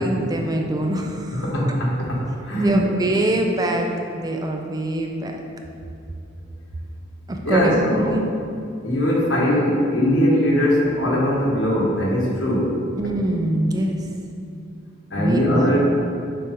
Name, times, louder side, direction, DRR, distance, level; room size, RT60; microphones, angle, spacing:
voice 1, 0.0-1.4 2.6-5.3 7.3-8.3 13.0-14.1 15.1-15.8, right 1 dB, 20° right, 2 dB, 0.4 m, -24 dB
voice 2, 1.3-2.8 7.4-8.1 8.8-12.7 15.1-15.8, equal, 70° left, -3 dB, 1.3 m, -20 dB
6.8 x 4.7 x 3.7 m, 2.4 s
head